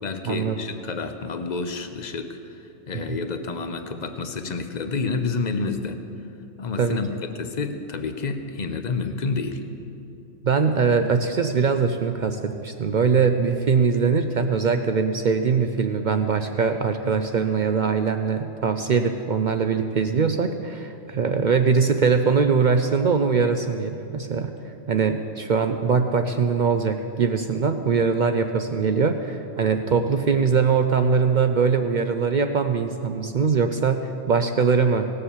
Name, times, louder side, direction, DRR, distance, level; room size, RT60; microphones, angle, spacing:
voice 1, 0.0-6.0 6.6-9.6, left 4 dB, 40° left, 8 dB, 0.7 m, -29 dB
voice 2, 10.4-24.5 24.9-35.1, right 5 dB, 60° right, 7 dB, 0.5 m, -22 dB
18.0 x 6.8 x 7.2 m, 2.7 s
omnidirectional pair, 1.4 m